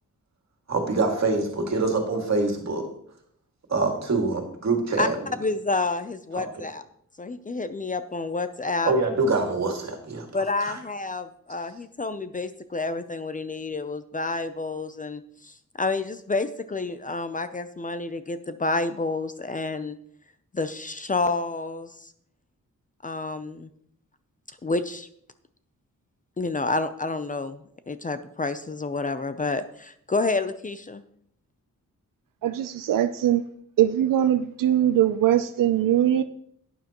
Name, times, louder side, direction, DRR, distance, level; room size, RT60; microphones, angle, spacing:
voice 1, 0.7-2.9 3.7-5.2 8.8-10.3 10.7-10.8, right 3 dB, 55° right, 2 dB, 2.2 m, -25 dB
voice 2, 5.4-6.8 7.2-8.9 10.3-20.0 20.5-22.1 23.0-23.7 24.6-25.1 26.4-31.0, left 3 dB, 25° left, 11 dB, 0.5 m, -29 dB
voice 3, 32.4-33.4 33.8-36.2, right 11 dB, 90° right, 10 dB, 0.5 m, -21 dB
11.5 x 9.5 x 3.0 m, 0.70 s
wide cardioid pair, 110°, 32 cm